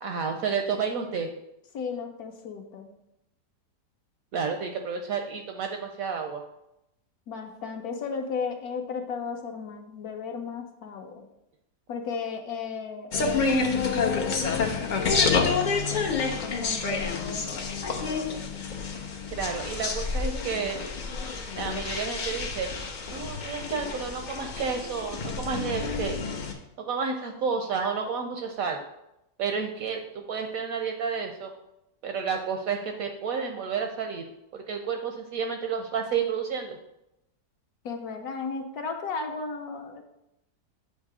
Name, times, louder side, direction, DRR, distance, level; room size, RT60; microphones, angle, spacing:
voice 1, 0.0-1.3 4.3-6.4 19.3-20.8 21.5-22.7 23.1-26.2 26.9-28.8 29.4-31.5 32.0-36.8, right 6 dB, 70° right, 5 dB, 0.8 m, -31 dB
voice 2, 1.7-2.9 7.3-11.2 11.9-18.6 37.8-40.0, left 5 dB, 70° left, 4 dB, 1.1 m, -35 dB
sound 1, 13.1-26.5, left 4 dB, 85° left, 0.4 m, -29 dB
8.1 x 2.8 x 4.7 m, 0.85 s
omnidirectional pair, 1.8 m